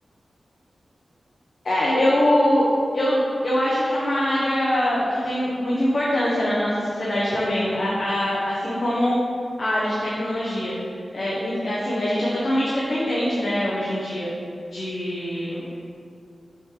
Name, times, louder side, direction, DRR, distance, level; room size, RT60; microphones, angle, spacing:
voice 1, 1.6-2.7 2.9-9.2 9.6-10.7 11.1-14.3 14.7-15.8, left 1 dB, 55° left, -7 dB, 1.0 m, -23 dB
5.9 x 3.8 x 4.8 m, 2.4 s
wide cardioid pair, 100°, 0 cm